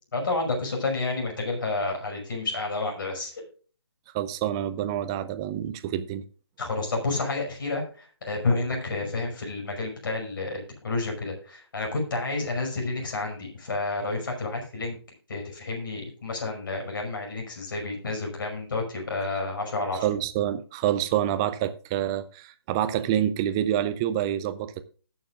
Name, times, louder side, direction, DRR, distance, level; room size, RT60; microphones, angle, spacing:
voice 1, 0.1-3.4 6.6-15.0 15.3-20.1, left 3 dB, 50° left, 5.7 m, -30 dB
voice 2, 4.1-6.2 20.0-24.8, right 11 dB, 10° right, 0.4 m, -27 dB
20.0 x 7.1 x 2.4 m
figure-of-eight pair, 155°, 14 cm